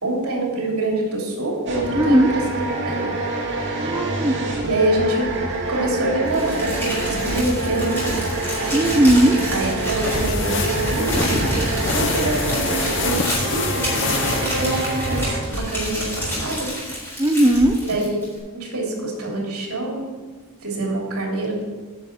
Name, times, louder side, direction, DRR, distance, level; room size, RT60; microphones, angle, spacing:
voice 1, 0.0-2.6 2.8-3.1 4.6-5.3 5.7-8.1 9.5-11.3 11.9-16.7 17.8-18.3 18.5-20.1 20.6-21.6, right 1 dB, 75° right, -1 dB, 3.0 m, -25 dB
sound 1, 1.7-15.4, right 2 dB, 50° right, 2.4 m, -26 dB
voice 2, 1.9-2.3 3.8-4.4 8.7-9.4 17.2-17.8, right 1 dB, 15° right, 4 dB, 0.5 m, -17 dB
Crumpling crinkling, 6.3-18.4, equal, 10° left, 3.9 m, -28 dB
sound 2, 9.8-15.3, left 5 dB, 55° left, 0.9 m, -28 dB
9.9 x 5.6 x 7.3 m, 1.3 s
head